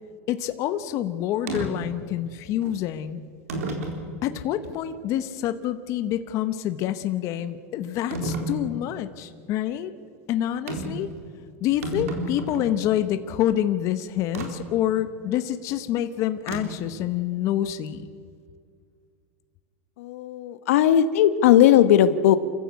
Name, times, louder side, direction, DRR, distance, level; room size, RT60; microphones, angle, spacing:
voice 1, 0.3-3.2 4.2-9.9 10.3-11.1 11.6-18.0, left 11 dB, 40° left, 10 dB, 1.1 m, -27 dB
sound 1, 1.5-1.7 2.6-2.7 3.5-4.0 4.6-4.7 8.1-8.5 10.7-11.0 11.4-11.5 11.7-12.8 14.3-14.5 16.5-16.9, right 1 dB, 85° right, 4.2 m, -30 dB
voice 2, 20.0-22.4, left 11 dB, 70° left, 12 dB, 1.3 m, -18 dB
28.5 x 15.0 x 8.4 m, 2.2 s
supercardioid pair, 140°, 8 cm